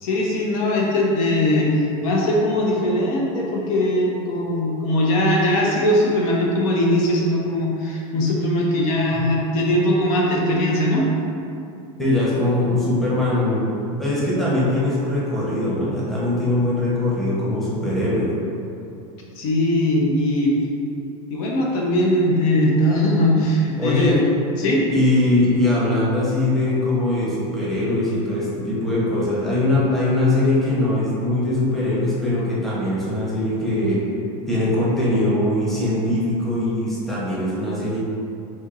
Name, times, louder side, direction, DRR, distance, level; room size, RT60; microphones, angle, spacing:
voice 1, 0.0-11.1 19.4-20.5 21.3-24.2 24.6-24.8, left 1 dB, 75° left, -2 dB, 0.7 m, -20 dB
voice 2, 12.0-13.7 14.0-18.3 23.8-24.2 24.9-34.0 34.5-38.0, left 1 dB, ahead, -9 dB, 0.8 m, -21 dB
4.3 x 2.8 x 2.4 m, 2.6 s
supercardioid pair, 140°, 18 cm